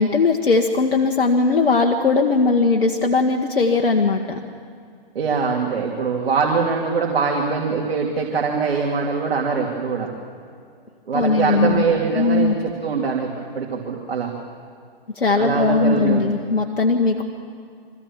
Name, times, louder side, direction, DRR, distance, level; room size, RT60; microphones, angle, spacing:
voice 1, 0.0-4.4 11.1-11.8 12.1-12.6 15.1-17.2, left 3 dB, 85° left, 2 dB, 1.5 m, -19 dB
voice 2, 5.1-10.1 11.1-13.3 13.5-14.3 15.4-16.2, right 5 dB, 75° right, -1 dB, 2.7 m, -22 dB
24.5 x 15.0 x 7.4 m, 2.3 s
hypercardioid pair, 130°, 30 cm